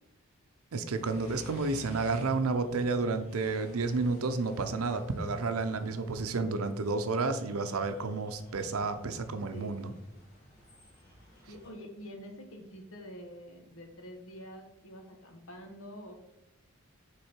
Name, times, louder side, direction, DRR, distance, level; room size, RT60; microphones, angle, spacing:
voice 1, 0.7-9.9, right 3 dB, 85° right, 9 dB, 0.6 m, -31 dB
sound 1, 0.9-11.7, equal, 35° left, 2.0 m, -53 dB
voice 2, 9.5-10.2 11.5-16.1, equal, 70° left, 3 dB, 1.2 m, -47 dB
6.4 x 3.8 x 4.5 m, 0.85 s
head